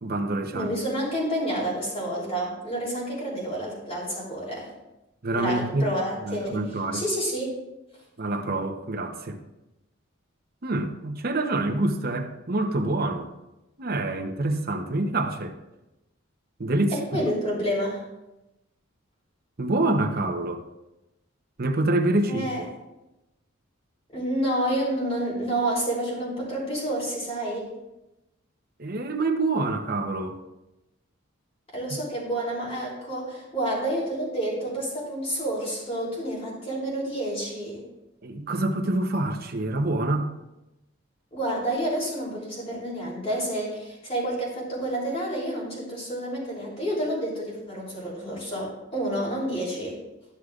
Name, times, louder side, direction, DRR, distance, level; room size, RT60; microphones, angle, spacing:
voice 1, 0.0-0.7 5.2-5.9 6.2-7.0 8.2-9.4 10.6-13.3 13.8-15.5 16.6-17.2 19.6-20.6 21.6-22.7 28.8-30.4 38.2-40.3, right 2 dB, 45° right, 4 dB, 0.8 m, -26 dB
voice 2, 0.5-4.7 5.3-6.6 6.9-7.6 16.9-18.0 22.3-22.6 24.1-27.7 31.7-37.8 41.3-50.0, right 1 dB, 30° left, -5 dB, 3.2 m, -29 dB
13.0 x 6.4 x 2.4 m, 0.96 s
head